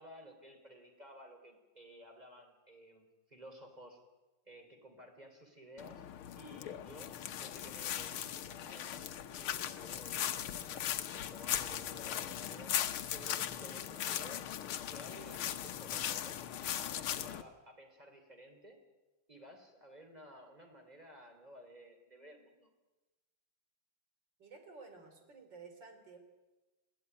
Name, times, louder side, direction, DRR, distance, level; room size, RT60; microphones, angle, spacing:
voice 1, 0.0-4.0 4.5-6.1 6.3-8.3 8.6-12.8 13.1-14.4 14.9-18.8 19.3-22.7, equal, 20° right, 3 dB, 3.6 m, -55 dB
sound 1, 5.8-17.4, left 10 dB, 85° left, 1.8 m, -39 dB
voice 2, 24.4-26.2, right 4 dB, 60° right, 5 dB, 3.8 m, -53 dB
21.0 x 15.5 x 9.3 m, 1.1 s
omnidirectional pair, 2.3 m